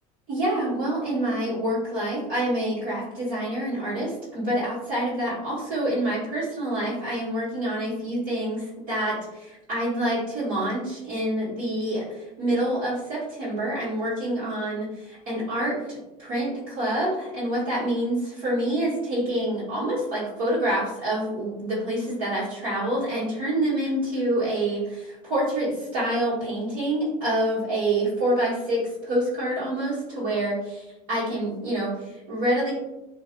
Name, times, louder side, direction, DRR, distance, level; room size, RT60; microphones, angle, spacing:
voice 1, 0.3-30.8 31.1-32.7, right 1 dB, 65° right, -11 dB, 1.1 m, -27 dB
2.5 x 2.2 x 2.5 m, 0.97 s
hypercardioid pair, 75°, 20 cm